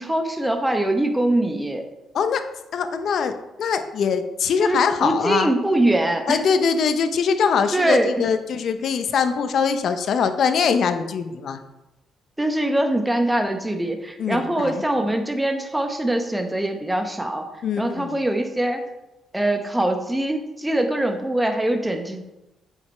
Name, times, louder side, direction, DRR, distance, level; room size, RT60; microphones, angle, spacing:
voice 1, 0.0-1.8 4.6-6.4 7.7-8.1 12.4-17.4 17.8-18.8 19.3-22.2, right 1 dB, 10° right, 5 dB, 0.9 m, -23 dB
voice 2, 2.7-5.5 6.3-11.6 14.2-14.8 17.6-18.1, left 6 dB, 65° left, 9 dB, 0.7 m, -22 dB
7.8 x 4.9 x 4.3 m, 0.97 s
cardioid pair, 90°, 0 cm